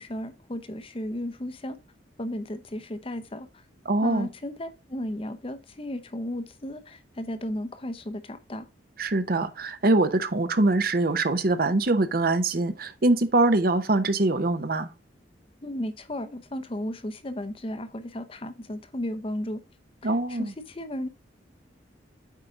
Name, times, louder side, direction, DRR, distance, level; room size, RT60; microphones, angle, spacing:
voice 1, 0.0-1.8 2.2-3.5 4.0-8.7 15.6-19.6 20.0-21.1, left 1 dB, 30° left, 0.7 m, -34 dB
voice 2, 3.9-4.3 9.0-14.9 20.0-20.5, right 2 dB, 55° right, 0.8 m, -23 dB
8.4 x 4.7 x 3.7 m
head